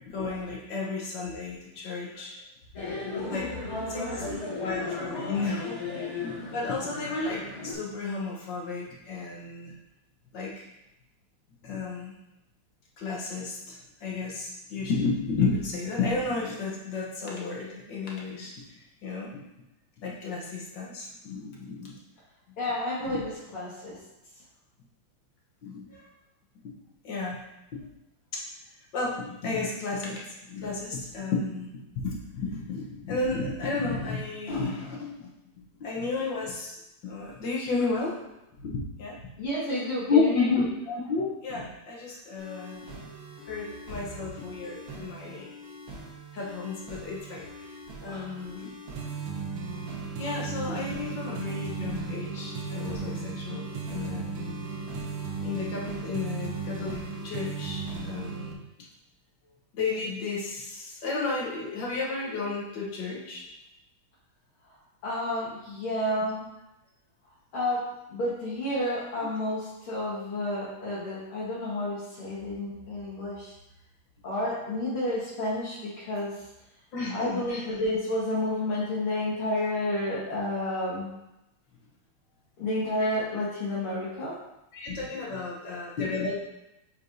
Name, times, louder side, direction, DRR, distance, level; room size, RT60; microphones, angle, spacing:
voice 1, 0.1-2.3 3.3-3.5 3.7-4.2 4.6-9.7 10.3-10.6 11.6-12.1 13.0-18.5 19.0-19.4 20.0-21.9 23.0-23.2 25.6-25.9 27.0-27.4 28.3-28.4 28.9-30.2 30.5-35.3 35.8-36.8 37.0-38.1 38.6-39.2 40.1-42.8 43.5-45.6 46.3-47.7 48.0-48.7 50.2-54.5 55.4-58.6 59.7-63.4 76.9-77.4 84.7-86.3, left 3 dB, 65° left, -3 dB, 1.6 m, -32 dB
sound 1, 2.7-7.7, left 3 dB, 35° left, 1.7 m, -35 dB
voice 2, 22.6-24.0 25.9-26.0 39.4-40.5 48.1-48.3 65.0-66.4 67.5-67.8 68.1-73.5 74.2-76.3 77.1-81.1 82.6-84.3, left 1 dB, 80° left, -9 dB, 2.3 m, -30 dB
sound 2, 42.4-58.4, right 1 dB, 55° right, 1.5 m, -45 dB
sound 3, 49.0-58.5, right 5 dB, 80° right, 1.5 m, -35 dB
8.3 x 4.3 x 2.7 m, 0.91 s
omnidirectional pair, 2.3 m